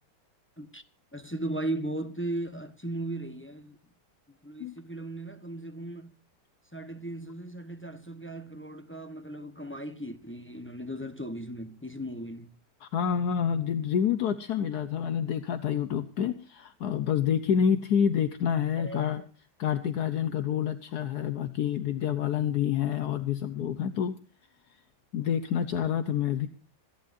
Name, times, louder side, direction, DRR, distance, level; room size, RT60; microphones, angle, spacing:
voice 1, 1.1-3.8 4.4-6.2 6.7-12.5 18.8-19.1, right 1 dB, 10° left, 0.8 m, -37 dB
voice 2, 12.8-19.2 19.6-24.2 25.1-26.5, left 8 dB, 65° left, 1.3 m, -28 dB
26.0 x 11.5 x 2.6 m
omnidirectional pair, 1.8 m